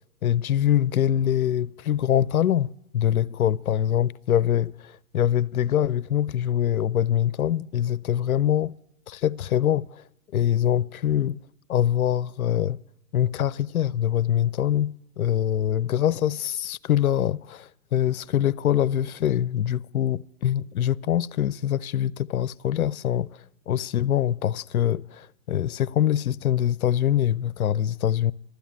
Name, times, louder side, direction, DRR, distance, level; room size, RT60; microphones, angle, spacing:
voice 1, 0.2-8.8 9.1-10.0 10.3-11.4 11.7-12.8 13.1-23.4 23.7-28.3, left 10 dB, 70° left, 0.5 m, -24 dB
13.0 x 9.0 x 8.8 m
figure-of-eight pair, 130°, 44 cm